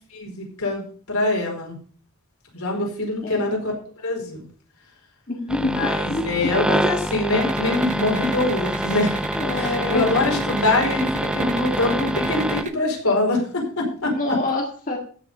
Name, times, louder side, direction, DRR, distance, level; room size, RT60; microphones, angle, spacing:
voice 1, 0.1-1.8 2.5-3.7 4.0-4.4 5.6-9.2 9.5-14.4, left 2 dB, 75° left, 0 dB, 4.8 m, -24 dB
voice 2, 5.3-6.3 9.4-10.4 14.2-15.0, left 2 dB, 35° left, 0 dB, 1.9 m, -26 dB
sound 1, 5.5-12.6, equal, 5° right, 0.5 m, -26 dB
sound 2, 7.4-12.7, right 4 dB, 35° right, 1.0 m, -33 dB
15.0 x 6.5 x 5.6 m, 0.42 s
head